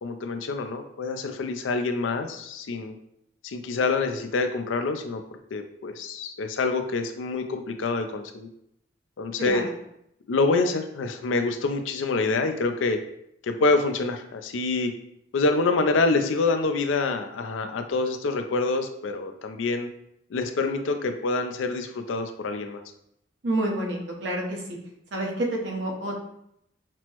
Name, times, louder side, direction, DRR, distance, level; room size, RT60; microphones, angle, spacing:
voice 1, 0.0-3.0 3.4-5.2 5.5-8.5 9.2-9.6 10.3-13.0 13.4-14.9 15.3-19.9 20.3-22.8, left 3 dB, 80° left, 7 dB, 0.4 m, -26 dB
voice 2, 9.4-9.7 23.4-24.6 25.1-26.2, right 1 dB, 75° right, -1 dB, 1.0 m, -28 dB
5.9 x 2.0 x 3.0 m, 0.76 s
head